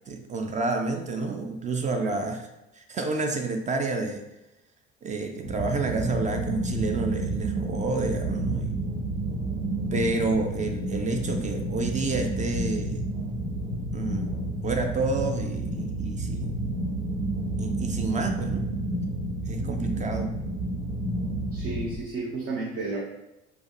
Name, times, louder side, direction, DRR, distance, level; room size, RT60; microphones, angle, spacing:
voice 1, 0.1-2.5 2.7-4.2 5.0-8.8 9.9-13.1 13.9-14.3 14.6-16.6 17.6-18.7 19.4-20.3, right 3 dB, 20° right, 5 dB, 0.4 m, -29 dB
sound 1, 5.4-22.0, right 1 dB, 75° right, 1.1 m, -30 dB
voice 2, 19.6-20.1 21.5-23.0, right 3 dB, 40° right, -3 dB, 0.8 m, -33 dB
4.4 x 2.2 x 2.9 m, 0.94 s
figure-of-eight pair, 55°, 34 cm